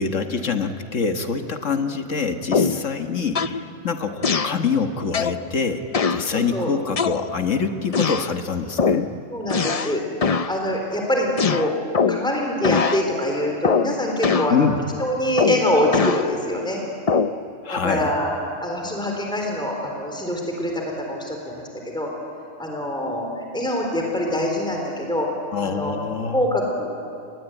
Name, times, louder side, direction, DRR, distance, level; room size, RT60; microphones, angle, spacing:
voice 1, 0.0-9.1 14.5-14.8 17.6-18.1 25.5-26.4, left 5 dB, 75° left, 6 dB, 1.8 m, -25 dB
sound 1, 2.5-2.9 3.3-3.6 4.2-4.6 5.1-5.4 5.9-6.3 7.0-7.5 7.9-8.3 8.8-9.1 9.5-10.0 10.2-10.5 11.4-12.3 12.6-13.0 13.6-13.9 14.2-14.6 15.4-16.3 17.1-17.4, left 5 dB, 35° left, 0.7 m, -22 dB
voice 2, 6.3-6.7 9.3-10.0 10.5-11.7 12.1-14.7 15.0-16.8 17.7-18.3 18.6-21.6 21.9-22.1 22.6-25.3 25.6-25.9 26.2-26.9, left 1 dB, 5° left, 0 dB, 3.8 m, -24 dB
29.5 x 21.5 x 9.1 m, 2.6 s
omnidirectional pair, 1.3 m